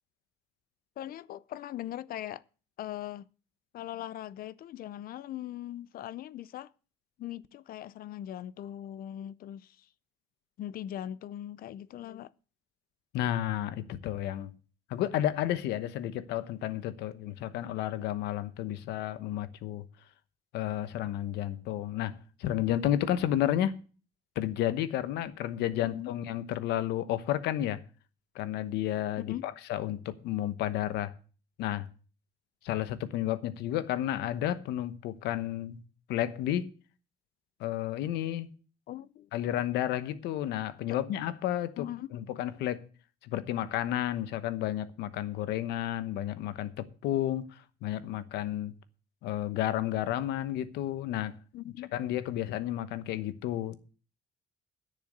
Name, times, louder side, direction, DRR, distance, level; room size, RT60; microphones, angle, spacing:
voice 1, 1.0-2.4 2.8-3.3 3.7-6.7 7.2-9.9 10.6-12.3 25.8-26.1 29.2-29.5 38.9-39.3 41.8-42.1 51.5-51.9, left 12 dB, 60° left, 0.6 m, -40 dB
voice 2, 13.1-14.5 14.9-19.8 20.5-23.7 24.4-27.8 28.3-31.1 31.6-31.9 32.6-35.8 36.1-36.7 37.6-38.5 39.3-42.8 43.2-47.5 47.8-48.7 49.2-51.4 51.9-53.8, left 12 dB, 85° left, 1.0 m, -31 dB
10.5 x 6.8 x 8.0 m
cardioid pair, 110°, 17 cm